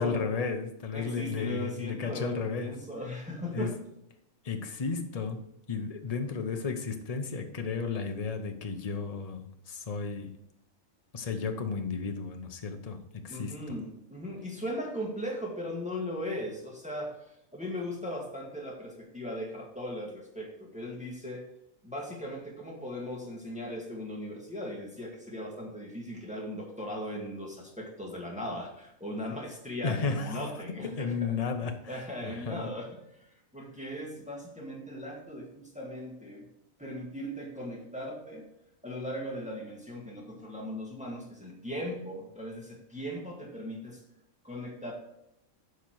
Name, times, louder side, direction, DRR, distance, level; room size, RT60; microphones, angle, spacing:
voice 1, 0.0-2.7 3.5-3.8 4.4-5.4 5.7-10.3 11.1-13.5 29.8-32.7, left 5 dB, 35° left, 6 dB, 0.8 m, -33 dB
voice 2, 0.9-3.8 13.3-17.1 17.5-21.4 21.8-31.3 31.9-36.5 36.8-38.5 38.8-44.0 44.4-44.9, equal, 5° right, -1 dB, 1.8 m, -38 dB
9.4 x 5.6 x 4.7 m, 0.78 s
omnidirectional pair, 1.4 m